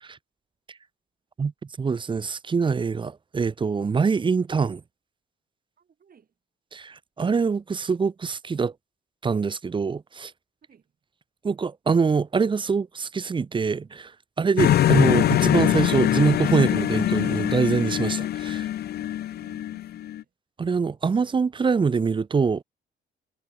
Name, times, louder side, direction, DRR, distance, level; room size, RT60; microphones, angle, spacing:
voice 1, 1.8-4.8 6.7-8.7 9.2-10.3 11.4-14.1 14.4-18.7 20.6-22.6, right 5 dB, 25° right, 0.5 m, -24 dB
voice 2, 5.8-6.4 10.7-11.0 18.9-20.3, right 7 dB, 45° right, 7.3 m, -57 dB
sound 1, 14.6-20.2, left 12 dB, 55° left, 0.4 m, -23 dB
cardioid pair, 90°, 20 cm